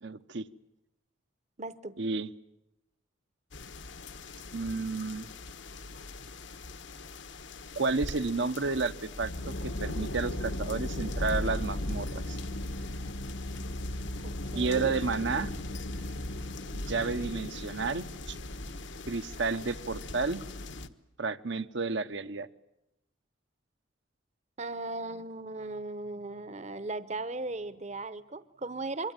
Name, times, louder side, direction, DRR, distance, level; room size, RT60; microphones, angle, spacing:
voice 1, 0.0-0.4 2.0-2.3 4.5-5.3 7.8-12.4 14.5-15.5 16.7-18.4 19.1-20.4 21.2-22.5, right 4 dB, 65° right, 10 dB, 1.0 m, -31 dB
voice 2, 1.6-2.0 14.2-14.9 24.6-29.1, right 2 dB, 35° right, 14 dB, 0.9 m, -37 dB
sound 1, 3.5-20.9, left 2 dB, 65° left, 1.4 m, -39 dB
Wind, 7.9-20.1, right 1 dB, 85° right, 3.1 m, -52 dB
sound 2, 9.2-16.6, left 1 dB, 85° left, 3.6 m, -39 dB
26.5 x 23.5 x 9.0 m, 0.86 s
head